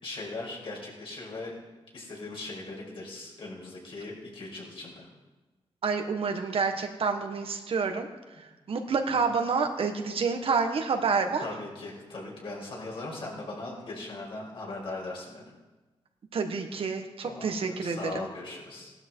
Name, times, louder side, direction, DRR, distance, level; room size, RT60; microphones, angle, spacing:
voice 1, 0.0-1.6 1.9-5.1 9.1-9.2 11.4-15.5 17.2-18.9, left 2 dB, 60° left, -2 dB, 5.4 m, -39 dB
voice 2, 5.8-8.1 8.4-11.5 16.3-18.3, right 5 dB, 65° right, 5 dB, 1.4 m, -28 dB
16.5 x 12.5 x 4.6 m, 1.2 s
wide cardioid pair, 115°, 10 cm